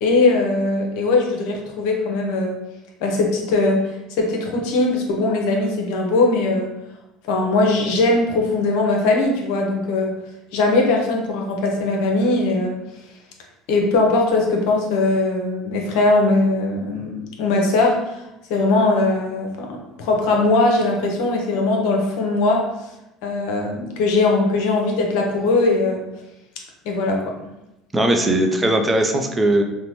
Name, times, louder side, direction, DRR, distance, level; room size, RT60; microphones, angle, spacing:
voice 1, 0.0-2.6 3.0-6.7 7.2-10.1 10.5-12.8 13.7-17.1 17.4-18.2 18.5-22.7 23.2-26.0 26.8-27.3, left 2 dB, 65° left, 1 dB, 0.7 m, -20 dB
voice 2, 27.9-29.6, right 1 dB, 20° right, 4 dB, 0.5 m, -18 dB
3.9 x 2.1 x 3.1 m, 0.91 s
hypercardioid pair, 70°, 0 cm